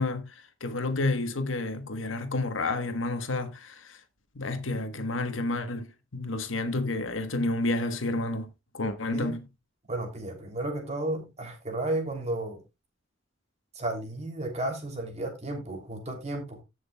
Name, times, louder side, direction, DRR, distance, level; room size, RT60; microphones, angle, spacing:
voice 1, 0.0-4.0 4.3-9.5, left 2 dB, 90° left, 1.3 m, -30 dB
voice 2, 9.9-12.6 13.7-16.6, right 1 dB, 35° right, 3.1 m, -33 dB
17.0 x 6.3 x 2.3 m
head